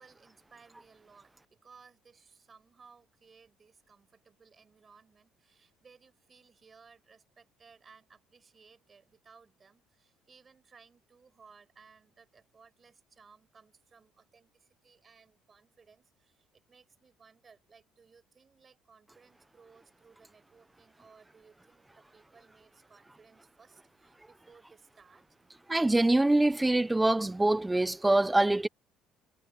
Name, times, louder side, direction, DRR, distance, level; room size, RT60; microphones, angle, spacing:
voice 1, 0.0-25.2, right 5 dB, 25° right, 7.8 m, -60 dB
voice 2, 25.7-28.7, right 2 dB, 10° right, 0.8 m, -24 dB
cardioid pair, 125°, 0 cm